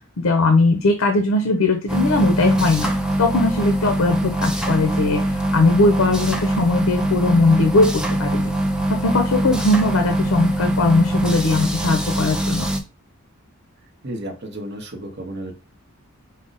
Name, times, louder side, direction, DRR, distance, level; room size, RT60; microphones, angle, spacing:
voice 1, 0.0-2.9 3.2-8.5 9.0-12.7, left 2 dB, 70° left, 5 dB, 0.6 m, -19 dB
sound 1, 1.9-12.8, right 1 dB, 5° right, 0.4 m, -22 dB
voice 2, 14.0-15.5, right 1 dB, 50° right, 3 dB, 0.8 m, -32 dB
4.9 x 2.1 x 3.9 m, 0.31 s
head